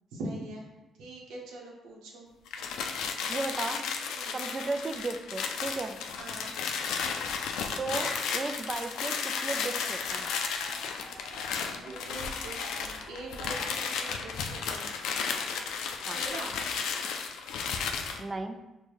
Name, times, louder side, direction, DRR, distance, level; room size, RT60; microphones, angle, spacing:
voice 1, 0.1-0.7 1.0-2.3 4.1-4.5 6.2-6.5 11.6-15.3 16.0-16.5, right 2 dB, 90° right, -1 dB, 0.8 m, -42 dB
sound 1, 2.5-18.2, left 6 dB, 85° left, 0.3 m, -33 dB
voice 2, 3.3-3.9 4.3-6.0 7.8-10.3 16.1-16.2 18.2-18.6, right 3 dB, 30° right, 8 dB, 0.3 m, -35 dB
Cheering, 9.3-14.8, equal, 15° left, 1.0 m, -50 dB
4.6 x 2.2 x 3.0 m, 1.0 s
cardioid pair, 90°, 0 cm